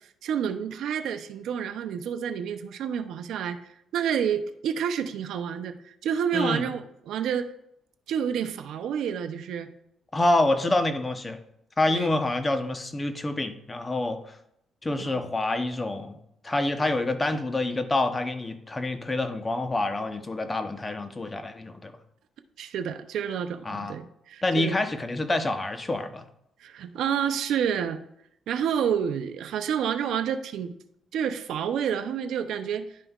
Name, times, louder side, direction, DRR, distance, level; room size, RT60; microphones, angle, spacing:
voice 1, 0.2-3.6 3.9-7.5 8.1-9.7 11.9-12.1 15.0-15.2 22.6-24.8 26.6-28.0 28.5-30.7 31.1-32.9, right 8 dB, 80° right, 9 dB, 0.5 m, -29 dB
voice 2, 6.3-6.7 10.1-11.4 11.8-14.4 14.8-21.9 23.6-24.0 24.4-26.2, left 2 dB, 25° left, 7 dB, 0.8 m, -27 dB
11.0 x 5.4 x 2.4 m, 0.75 s
cardioid pair, 90°, 0 cm